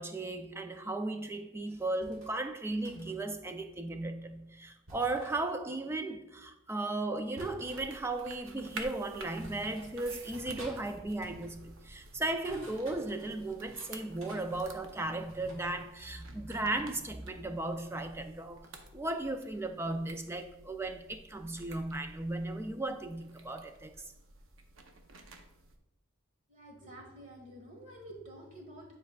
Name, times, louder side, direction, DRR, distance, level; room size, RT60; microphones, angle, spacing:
voice 1, 0.0-24.1, right 2 dB, 10° right, 0.4 m, -36 dB
sound 1, 2.0-2.3 2.8-3.2 4.9-5.4 7.4-7.9 8.8-8.9 9.4-9.9 10.3-10.8 11.1-11.5 12.2-13.9 14.2-15.6, right 1 dB, 90° right, 1.5 m, -51 dB
sound 2, 7.6-25.8, right 3 dB, 70° right, 0.7 m, -52 dB
voice 2, 26.5-29.0, right 1 dB, 40° right, 1.5 m, -49 dB
9.5 x 4.5 x 2.3 m
head